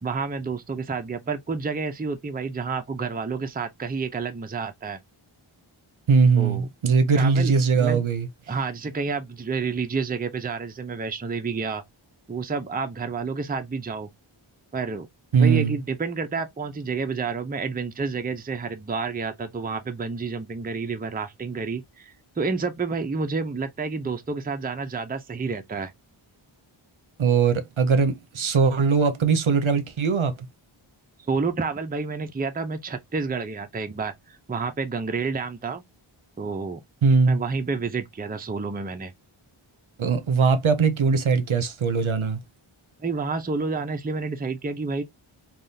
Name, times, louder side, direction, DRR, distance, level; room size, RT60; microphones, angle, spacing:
voice 1, 0.0-5.0 6.4-6.7 7.2-8.0 8.5-11.8 12.3-14.1 14.7-15.1 15.3-25.9 31.3-35.8 36.4-36.8 37.3-39.1 43.0-45.0, right 4 dB, 20° right, 0.5 m, -29 dB
voice 2, 6.1-8.3 15.3-15.8 27.2-30.3 37.0-37.4 40.0-42.4, right 5 dB, 70° right, 0.7 m, -20 dB
3.4 x 2.4 x 2.6 m
wide cardioid pair, 45°, 50 cm